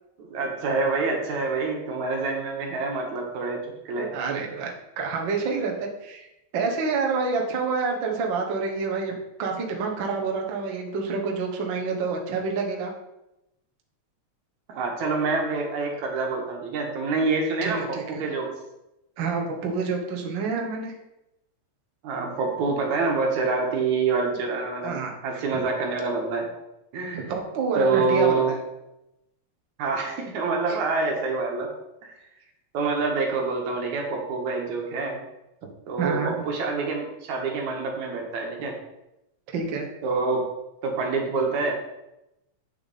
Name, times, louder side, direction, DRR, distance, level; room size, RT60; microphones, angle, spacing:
voice 1, 0.3-4.1 14.7-18.5 22.0-25.0 25.2-26.5 26.9-27.3 27.7-28.5 29.8-31.7 32.0-32.1 32.7-35.2 35.9-38.7 40.0-40.4 40.8-41.8, right 4 dB, 80° right, 1 dB, 2.8 m, -26 dB
voice 2, 4.0-4.7 5.0-12.9 17.6-18.2 19.2-20.9 24.8-25.1 27.1-28.6 30.7-30.8 36.0-36.3 39.5-39.9, right 4 dB, 50° right, 1 dB, 1.5 m, -28 dB
8.0 x 6.7 x 4.2 m, 0.90 s
omnidirectional pair, 3.3 m